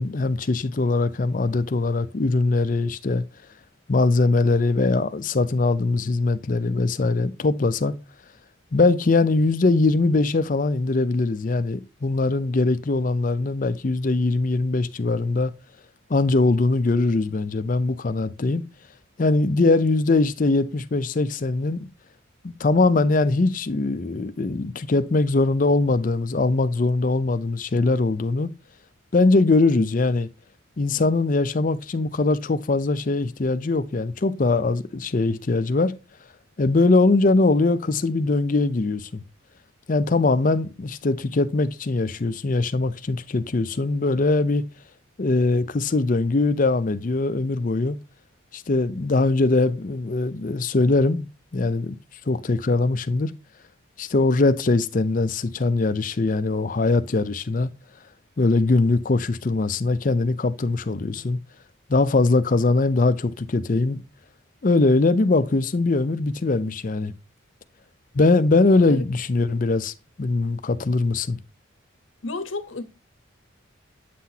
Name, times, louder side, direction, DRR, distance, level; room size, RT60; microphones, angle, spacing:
voice 1, 0.0-3.2 3.9-7.9 8.7-15.5 16.1-18.6 19.2-21.9 22.4-28.5 29.1-30.3 30.8-35.9 36.6-39.2 39.9-44.6 45.2-48.0 48.5-51.3 51.5-52.0 52.3-53.3 54.0-57.7 58.4-61.4 61.9-64.0 64.6-67.1 68.1-71.4, left 3 dB, 40° left, 0.5 m, -21 dB
voice 2, 68.7-69.0 72.2-72.8, left 3 dB, 70° left, 0.9 m, -31 dB
8.4 x 5.8 x 2.8 m
head